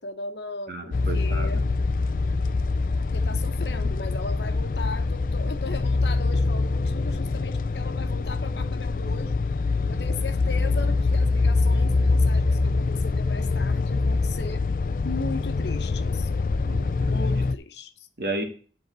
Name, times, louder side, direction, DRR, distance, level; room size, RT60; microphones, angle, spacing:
voice 1, 0.0-1.6 3.0-9.4 9.9-14.7 15.0-16.3 17.1-18.1, left 3 dB, 75° left, 1.0 m, -37 dB
voice 2, 0.7-1.6 16.7-17.1 18.2-18.4, right 2 dB, 55° right, 1.8 m, -32 dB
sound 1, 0.9-17.5, left 3 dB, 50° left, 0.4 m, -24 dB
10.5 x 4.0 x 7.5 m
head